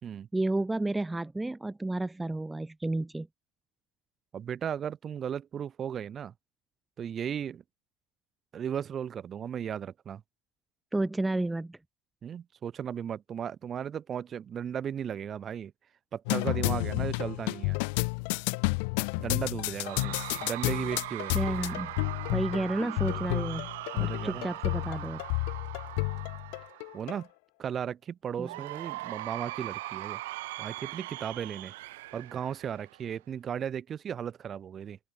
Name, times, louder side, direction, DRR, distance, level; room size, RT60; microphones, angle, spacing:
voice 1, 0.3-3.3 10.9-11.8 21.3-21.9 22.3-23.7 24.0-25.2 28.4-28.5, right 2 dB, 5° right, 4.2 m, -31 dB
voice 2, 4.3-6.3 7.0-7.6 8.5-10.2 12.2-15.7 16.1-17.8 19.2-21.6 23.9-24.5 26.9-27.3 27.6-30.2 30.6-31.7 32.1-35.0, right 8 dB, 25° right, 5.7 m, -36 dB
sound 1, 16.3-27.2, left 34 dB, 60° left, 1.7 m, -31 dB
Cheering / Crowd, 19.8-27.2 28.4-33.2, right 19 dB, 75° right, 4.5 m, -40 dB
open air
supercardioid pair, 150°, 0 cm